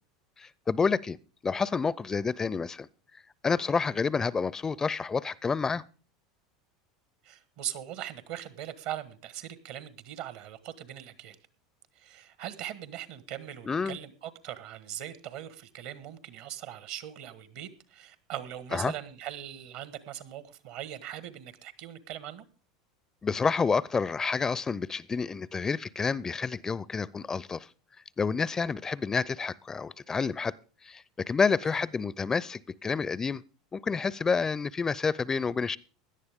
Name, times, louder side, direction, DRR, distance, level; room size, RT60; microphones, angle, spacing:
voice 1, 0.4-1.2 1.4-2.9 3.4-5.8 13.7-14.0 18.7-18.9 23.2-27.7 28.2-30.6 30.8-33.4 33.7-35.8, left 5 dB, 20° left, 0.5 m, -29 dB
voice 2, 7.2-11.4 11.9-22.4 31.6-31.7, right 11 dB, 65° right, 1.4 m, -40 dB
16.5 x 11.0 x 3.6 m
hypercardioid pair, 85°, 2 cm